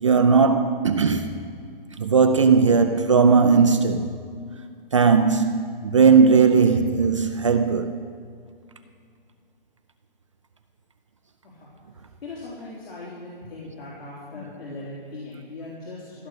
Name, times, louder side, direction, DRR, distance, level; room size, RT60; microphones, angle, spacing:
voice 1, 0.0-1.3 2.0-4.1 4.9-7.9, right 5 dB, 35° right, 0.4 m, -18 dB
voice 2, 12.0-16.3, left 2 dB, 80° left, 3.7 m, -39 dB
16.0 x 6.4 x 9.3 m
hypercardioid pair, 170°, 29 cm